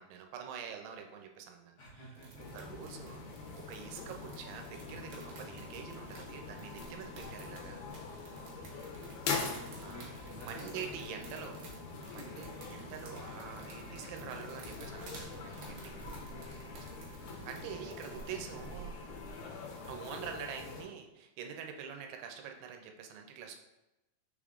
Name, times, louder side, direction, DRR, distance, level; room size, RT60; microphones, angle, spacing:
voice 1, 0.0-1.8 2.5-3.2 3.6-7.9 9.8-10.1 10.4-11.5 12.1-15.9 17.5-18.9 19.9-23.6, right 7 dB, 90° right, 4 dB, 2.7 m, -45 dB
voice 2, 1.8-2.5 8.5-11.5 12.0-12.6 15.8-16.1 16.8-17.3, equal, 65° left, -7 dB, 1.6 m, -55 dB
sound 1, 2.1-18.8, right 4 dB, 75° right, 2.6 m, -52 dB
sound 2, 2.4-20.8, left 5 dB, 85° left, 2.8 m, -44 dB
sound 3, 6.2-19.4, right 3 dB, 55° right, 1.3 m, -57 dB
6.1 x 3.6 x 2.4 m, 0.98 s
omnidirectional pair, 4.6 m